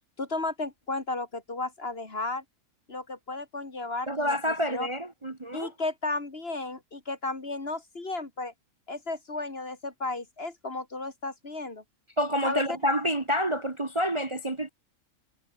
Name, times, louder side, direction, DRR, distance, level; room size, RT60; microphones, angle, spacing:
voice 1, 0.2-2.4 2.9-4.4 4.7-4.9 5.5-8.5 8.9-11.8 12.4-12.8, left 2 dB, 40° left, 2.9 m, -34 dB
voice 2, 4.1-5.7 12.2-14.7, equal, 20° right, 1.3 m, -28 dB
omnidirectional pair, 1.5 m